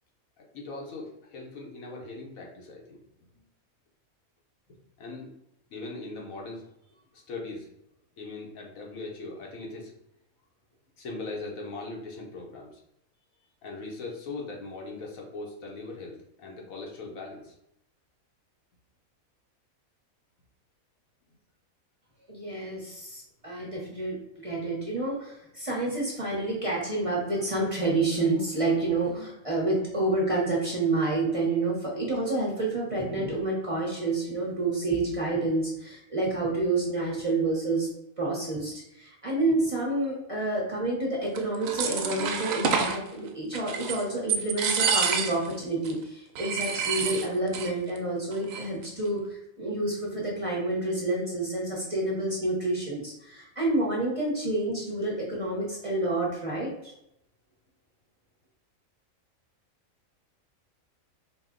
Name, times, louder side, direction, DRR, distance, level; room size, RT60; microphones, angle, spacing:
voice 1, 0.5-3.0 5.0-5.3 5.7-6.7 7.1-7.7 8.2-9.9 11.0-12.8 13.6-17.5 30.0-30.1, left 3 dB, 75° left, -1 dB, 1.3 m, -40 dB
voice 2, 22.3-37.9 38.2-49.3 49.6-56.9, right 2 dB, 30° right, -4 dB, 0.8 m, -29 dB
sound 1, 41.4-43.0 43.5-44.0 44.3-45.5 45.8-45.9 46.3-47.7 48.0-48.1 48.3-48.8, right 6 dB, 75° right, 1.0 m, -28 dB
4.3 x 2.2 x 3.7 m, 0.80 s
omnidirectional pair, 1.4 m